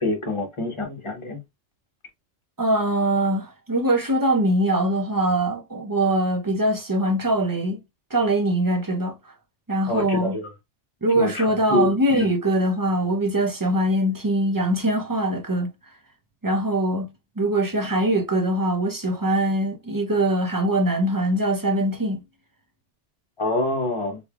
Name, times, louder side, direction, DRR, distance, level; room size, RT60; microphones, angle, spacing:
voice 1, 0.0-1.4 9.9-10.5 11.2-12.3 23.4-24.2, left 2 dB, 30° left, 0.9 m, -26 dB
voice 2, 2.6-7.8 8.1-9.3 9.7-10.4 11.0-15.7 16.4-22.2, right 1 dB, 20° right, 0.6 m, -22 dB
3.4 x 3.2 x 2.3 m
omnidirectional pair, 1.2 m